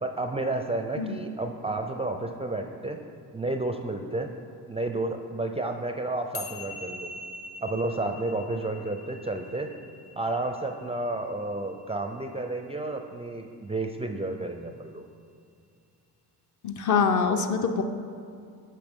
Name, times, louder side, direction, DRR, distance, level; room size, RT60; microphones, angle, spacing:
voice 1, 0.0-3.0 3.3-4.3 4.7-7.1 7.6-9.7 10.2-15.0, right 2 dB, 15° right, 4 dB, 0.4 m, -31 dB
sound 1, 6.3-12.9, left 2 dB, 85° left, 1.0 m, -44 dB
voice 2, 16.6-17.8, left 5 dB, 40° left, 6 dB, 0.6 m, -24 dB
8.4 x 5.7 x 3.6 m, 2.3 s
supercardioid pair, 60°, 45 cm